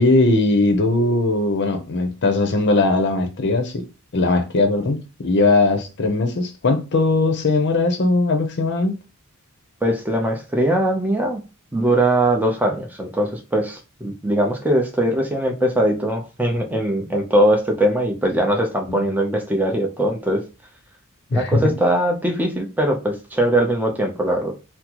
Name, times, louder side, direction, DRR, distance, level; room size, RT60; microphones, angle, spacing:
voice 1, 0.0-3.9 4.1-8.9 18.9-19.0 21.3-21.7, left 2 dB, 55° left, 0.7 m, -19 dB
voice 2, 9.8-11.4 11.7-20.4 21.3-24.5, right 1 dB, 10° right, 0.6 m, -21 dB
3.9 x 2.0 x 2.9 m
head